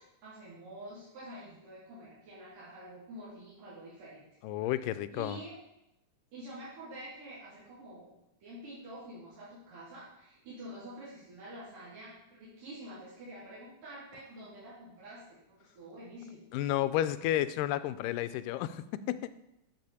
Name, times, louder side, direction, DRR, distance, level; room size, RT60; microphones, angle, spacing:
voice 1, 0.0-4.2 5.1-5.5 6.3-8.1 8.4-16.4, right 1 dB, 80° right, -10 dB, 4.8 m, -47 dB
voice 2, 4.4-5.4 16.5-19.3, left 13 dB, 90° left, 13 dB, 2.2 m, -32 dB
13.0 x 6.9 x 4.2 m, 0.86 s
omnidirectional pair, 3.8 m